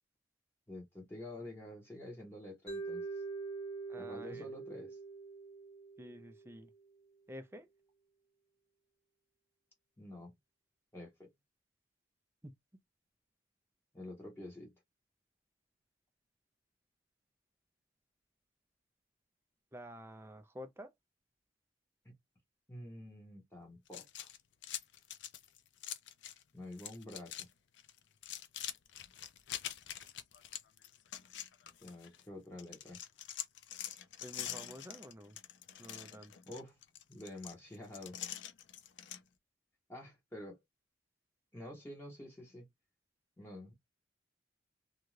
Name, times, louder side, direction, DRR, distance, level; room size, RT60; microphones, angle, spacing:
voice 1, 0.7-3.2 4.0-5.0 10.0-10.3 10.9-11.3 13.9-14.7 22.0-22.2 22.7-24.3 26.5-27.5 31.8-33.0 36.5-36.8 37.1-38.2 39.9-40.6 41.5-42.7 43.4-43.7, left 1 dB, 10° left, 0.9 m, -48 dB
Mallet percussion, 2.7-6.8, right 4 dB, 30° left, 1.2 m, -44 dB
voice 2, 3.9-4.5 6.0-6.7 7.3-7.7 12.4-12.5 19.7-20.9 34.2-35.4 35.8-36.3, equal, 15° right, 0.4 m, -50 dB
sound 1, 23.9-26.4 26.7-27.5 27.8-32.2 32.6-39.2, left 11 dB, 70° left, 0.4 m, -45 dB
2.5 x 2.3 x 3.1 m
head